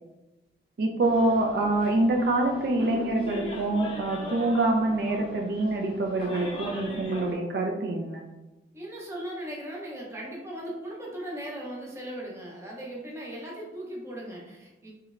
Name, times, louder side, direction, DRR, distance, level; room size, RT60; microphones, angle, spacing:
voice 1, 0.8-8.3, right 2 dB, 60° right, 1 dB, 0.3 m, -25 dB
sound 1, 1.0-7.3, equal, 30° left, 0.6 m, -39 dB
voice 2, 8.7-14.9, right 1 dB, 15° right, -4 dB, 0.6 m, -38 dB
3.1 x 3.0 x 2.4 m, 1.1 s
head